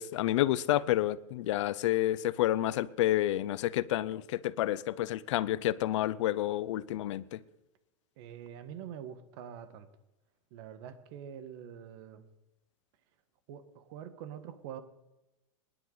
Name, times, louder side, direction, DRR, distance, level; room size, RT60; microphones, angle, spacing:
voice 1, 0.0-7.4, left 14 dB, 70° left, 18 dB, 0.7 m, -29 dB
voice 2, 8.2-9.9 10.5-12.2 13.5-14.8, right 9 dB, 55° right, 10 dB, 1.5 m, -45 dB
20.5 x 11.0 x 4.0 m, 0.97 s
supercardioid pair, 140°, 16 cm